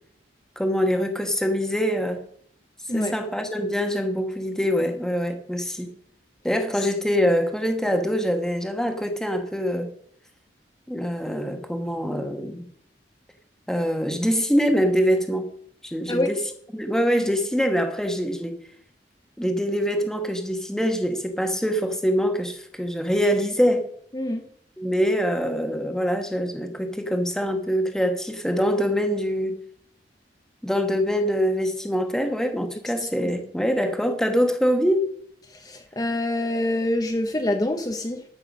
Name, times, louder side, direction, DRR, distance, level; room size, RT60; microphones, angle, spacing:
voice 1, 0.6-2.2 2.9-5.9 6.4-9.9 10.9-12.6 13.7-15.5 15.8-16.4 16.7-18.6 19.4-23.9 24.8-29.6 30.6-35.0, equal, 5° left, 5 dB, 1.2 m, -24 dB
voice 2, 33.0-33.3 35.5-38.2, left 1 dB, 20° left, 4 dB, 0.8 m, -26 dB
13.5 x 5.9 x 6.0 m, 0.65 s
head